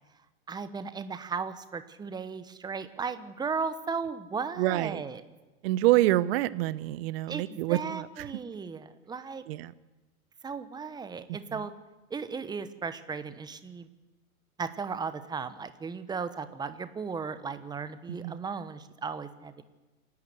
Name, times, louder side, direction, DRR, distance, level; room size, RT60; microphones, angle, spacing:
voice 1, 0.5-5.2 7.3-9.4 10.4-11.7 12.1-13.9 14.6-19.6, right 5 dB, 10° right, 12 dB, 1.1 m, -36 dB
voice 2, 4.6-5.0 5.6-8.3 9.5-9.7 11.5-11.6 18.1-18.4, right 16 dB, 40° right, 17 dB, 1.0 m, -27 dB
27.5 x 12.0 x 7.9 m, 1.2 s
hypercardioid pair, 120°, 44 cm